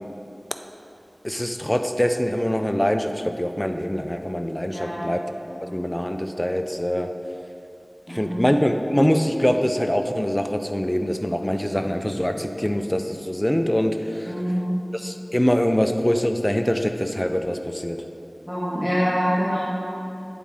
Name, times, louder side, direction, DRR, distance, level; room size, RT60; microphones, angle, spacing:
voice 1, 1.2-5.2 5.6-7.1 8.1-14.3 14.9-18.0, equal, 15° left, 6 dB, 0.4 m, -24 dB
voice 2, 4.7-5.1 5.5-5.6 8.1-8.4 14.2-14.8 18.5-19.6, equal, 5° right, -10 dB, 1.2 m, -25 dB
8.6 x 4.1 x 3.6 m, 2.8 s
wide cardioid pair, 50°, 0 cm